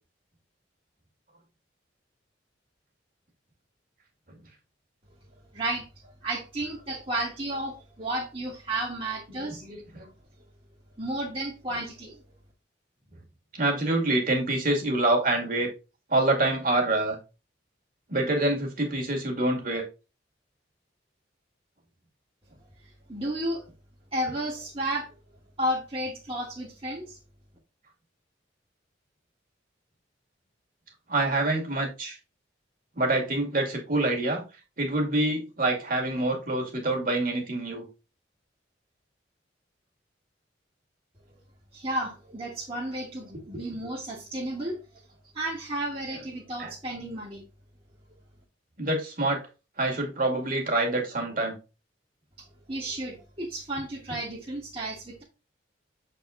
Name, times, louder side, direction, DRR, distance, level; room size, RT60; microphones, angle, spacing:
voice 1, 5.5-9.6 11.0-12.2 23.1-23.7 24.1-25.1 25.6-27.2 41.7-44.8 45.3-47.4 52.4-55.2, right 1 dB, 30° right, -4 dB, 1.5 m, -32 dB
voice 2, 9.6-10.1 13.5-15.7 16.1-17.2 18.1-19.8 31.1-32.2 33.0-34.4 34.8-37.9 46.6-46.7 48.8-49.4 49.8-51.6, right 2 dB, 50° right, 2 dB, 2.1 m, -26 dB
7.0 x 4.3 x 3.6 m, 0.30 s
head